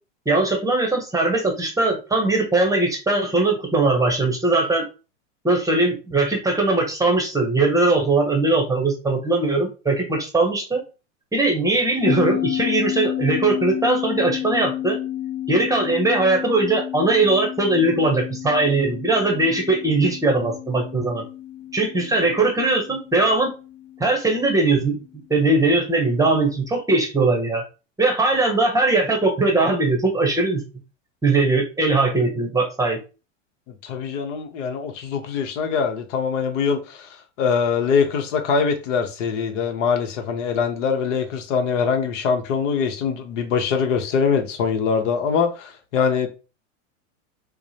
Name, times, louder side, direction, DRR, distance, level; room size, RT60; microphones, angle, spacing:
voice 1, 0.3-4.9 5.4-10.8 11.3-15.0 15.5-21.2 21.7-23.5 24.0-25.0 25.3-27.6 28.0-30.6 31.2-33.0, right 2 dB, 10° right, 0.8 m, -20 dB
sound 1, 12.0-24.8, left 11 dB, 30° left, 0.9 m, -31 dB
voice 2, 33.8-46.3, left 6 dB, 70° left, 1.0 m, -23 dB
4.6 x 2.1 x 2.8 m
hypercardioid pair, 115°, 38 cm